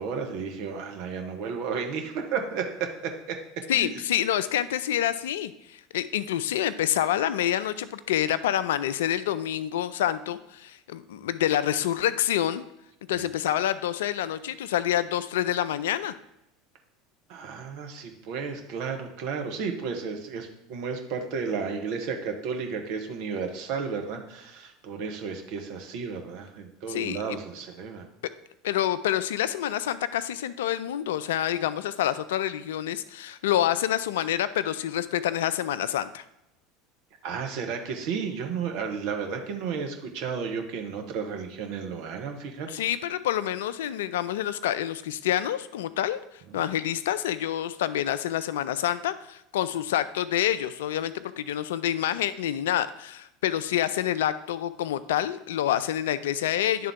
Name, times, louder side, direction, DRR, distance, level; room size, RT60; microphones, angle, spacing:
voice 1, 0.0-3.4 3.7-3.9 13.1-13.2 17.3-28.1 37.2-42.7 46.5-46.6, right 5 dB, 60° right, 4 dB, 1.0 m, -33 dB
voice 2, 3.7-12.6 13.1-16.1 26.9-27.4 28.6-36.2 42.7-56.9, left 11 dB, 70° left, 15 dB, 0.3 m, -27 dB
9.4 x 3.7 x 3.5 m, 0.85 s
hypercardioid pair, 75°, 0 cm